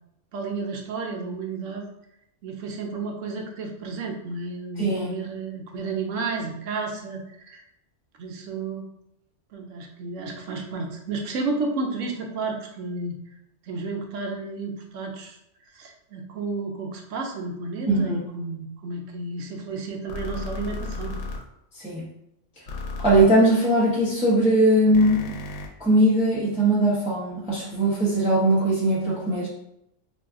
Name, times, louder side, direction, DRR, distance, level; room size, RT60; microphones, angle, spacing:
voice 1, 0.3-1.9 2.4-7.6 8.2-8.9 9.5-13.1 13.6-15.4 15.7-21.2, right 3 dB, 80° right, 2 dB, 1.0 m, -32 dB
voice 2, 17.9-18.2 21.8-22.1 23.0-25.3 25.8-29.5, right 1 dB, 5° right, -8 dB, 0.7 m, -20 dB
sound 1, 20.1-21.4 22.7-23.2 24.9-25.7, left 3 dB, 80° left, 0.9 m, -33 dB
2.7 x 2.3 x 3.5 m, 0.79 s
omnidirectional pair, 1.3 m